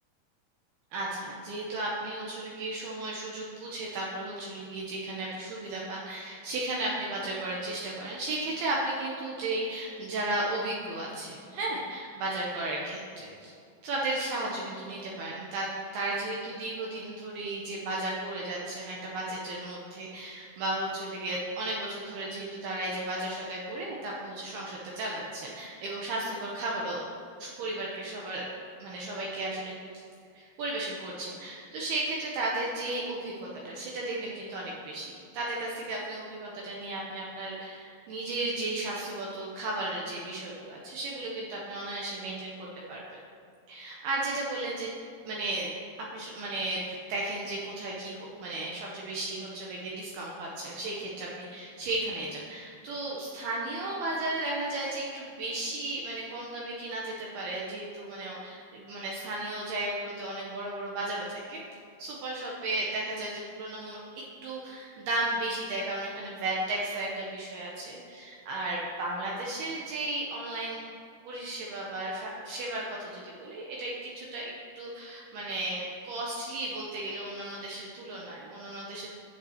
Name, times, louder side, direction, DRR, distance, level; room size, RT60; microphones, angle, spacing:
voice 1, 0.9-13.5 13.8-27.0 27.4-28.5 28.8-29.8 30.3-43.2 43.7-44.9 45.3-45.7 46.1-46.8 47.1-61.6 62.0-63.3 63.6-70.8 71.2-79.1, right 2 dB, 75° right, -3 dB, 2.5 m, -34 dB
12.0 x 7.8 x 2.8 m, 2.5 s
omnidirectional pair, 5.1 m